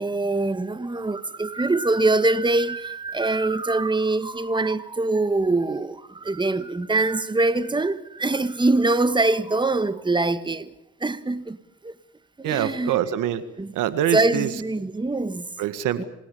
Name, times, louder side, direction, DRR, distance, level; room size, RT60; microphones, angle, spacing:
voice 1, 0.0-10.7 11.0-11.6 11.8-11.9 12.4-13.0 13.6-13.7 14.1-15.5 15.9-16.0, right 2 dB, 15° right, 1.5 m, -23 dB
voice 2, 12.4-13.4 13.7-14.5 15.6-16.0, right 11 dB, 90° right, 1.9 m, -24 dB
27.5 x 18.5 x 7.1 m
cardioid pair, 90°, 30 cm